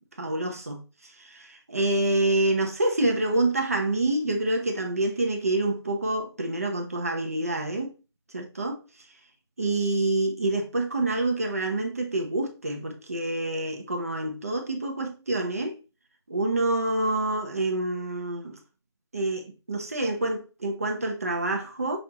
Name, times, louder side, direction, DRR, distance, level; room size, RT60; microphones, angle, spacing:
voice 1, 0.2-7.9 8.3-8.8 9.6-15.8 16.3-18.6 19.1-22.0, right 2 dB, 35° right, 0.8 m, -27 dB
6.1 x 2.5 x 3.0 m
figure-of-eight pair, 170°, 14 cm